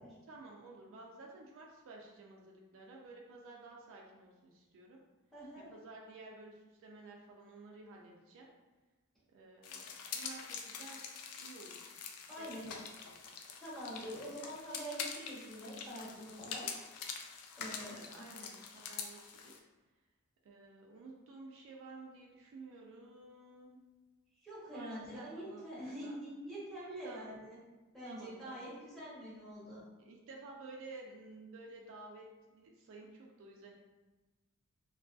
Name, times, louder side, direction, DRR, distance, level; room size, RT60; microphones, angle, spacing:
voice 1, 0.3-5.0 5.7-8.5 9.3-11.0 11.4-11.9 12.4-13.2 17.8-19.7 20.4-23.8 24.7-26.2 27.0-27.3 28.0-28.6 30.1-33.7, right 3 dB, 60° right, -1 dB, 0.3 m, -53 dB
voice 2, 5.3-5.7 12.3-12.7 13.6-16.7 17.6-18.2 24.4-27.6 27.9-29.8, equal, ahead, -10 dB, 0.9 m, -45 dB
sound 1, 9.6-19.6, left 6 dB, 85° left, 0.3 m, -45 dB
2.5 x 2.3 x 2.3 m, 1.2 s
head